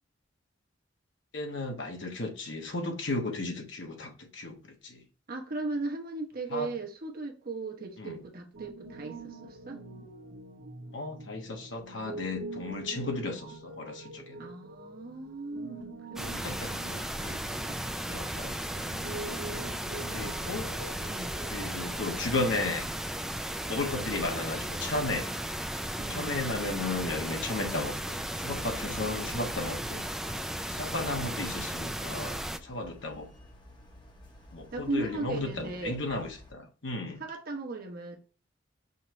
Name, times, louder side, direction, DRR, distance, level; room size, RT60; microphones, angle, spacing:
voice 1, 1.3-5.0 6.5-6.7 8.0-8.2 10.9-14.5 16.4-16.7 17.2-17.4 18.1-18.6 20.1-20.7 21.5-22.9 23.7-25.3 26.1-30.1 30.7-33.3 34.5-37.2, left 2 dB, 70° left, 1.2 m, -34 dB
voice 2, 5.3-9.8 14.4-17.4 17.7-17.8 21.1-21.4 26.0-26.4 34.7-36.0 37.2-38.2, right 3 dB, 50° right, 1.0 m, -37 dB
Piano, 8.5-22.2, right 2 dB, 80° right, 0.9 m, -45 dB
sound 1, 16.2-32.6, right 1 dB, ahead, 0.3 m, -35 dB
sound 2, 31.2-36.5, left 1 dB, 25° left, 0.9 m, -53 dB
5.5 x 2.9 x 3.1 m
head